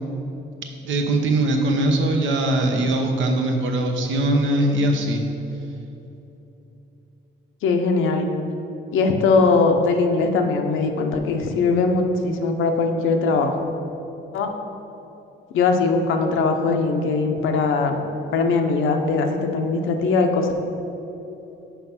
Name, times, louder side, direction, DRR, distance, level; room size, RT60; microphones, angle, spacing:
voice 1, 0.8-5.2, right 1 dB, 70° right, 3 dB, 0.9 m, -21 dB
voice 2, 7.6-8.3 8.9-13.5 14.3-14.5 15.5-18.0 18.3-20.5, left 4 dB, 85° left, 4 dB, 0.7 m, -20 dB
5.6 x 4.8 x 5.7 m, 3.0 s
cardioid pair, 90°, 20 cm